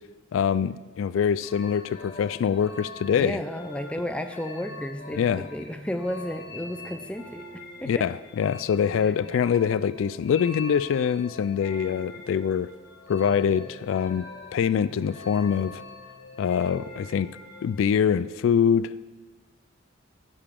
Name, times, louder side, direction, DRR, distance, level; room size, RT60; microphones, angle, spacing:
voice 1, 0.3-3.4 5.1-5.4 7.8-12.7 13.1-14.3 14.5-15.8 16.4-17.3 17.6-18.9, left 7 dB, 80° left, 17 dB, 0.3 m, -24 dB
sound 1, 1.4-17.8, left 2 dB, 50° left, 2.9 m, -43 dB
voice 2, 3.2-8.0, left 1 dB, 5° left, 7 dB, 0.5 m, -33 dB
14.5 x 6.8 x 3.7 m, 1.3 s
head